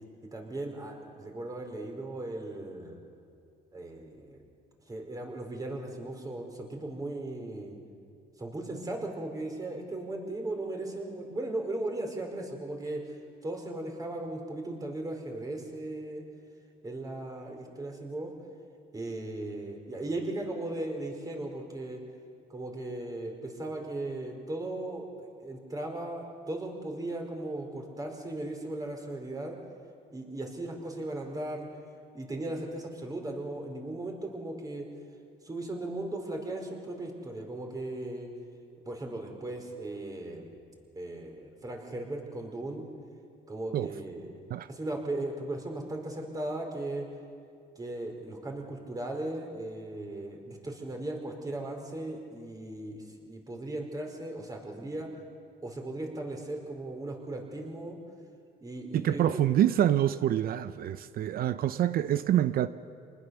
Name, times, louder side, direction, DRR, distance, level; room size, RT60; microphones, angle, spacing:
voice 1, 0.3-3.0 3.7-4.4 4.9-7.8 8.4-13.1 13.4-16.2 16.8-18.3 18.9-22.0 22.5-29.6 30.1-31.7 32.1-34.9 35.4-38.3 38.8-40.6 40.9-42.8 43.5-47.1 47.8-55.1 55.6-58.0 58.6-59.4, right 2 dB, 20° right, 4.7 m, -37 dB
voice 2, 58.9-62.7, right 11 dB, 60° right, 0.7 m, -26 dB
27.5 x 20.0 x 7.1 m
cardioid pair, 110°, 17 cm